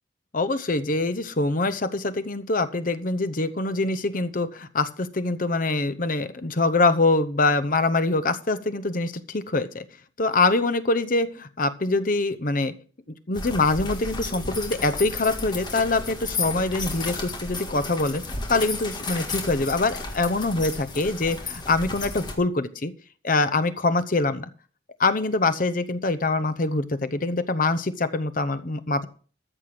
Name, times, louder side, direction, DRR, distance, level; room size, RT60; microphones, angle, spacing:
voice 1, 0.3-9.8 10.2-12.7 13.3-18.2 18.5-22.9 23.2-24.5 25.0-29.1, left 3 dB, 45° left, 12 dB, 0.8 m, -24 dB
sound 1, 13.3-22.3, left 3 dB, 25° left, 1.7 m, -33 dB
13.5 x 6.7 x 6.0 m, 0.41 s
head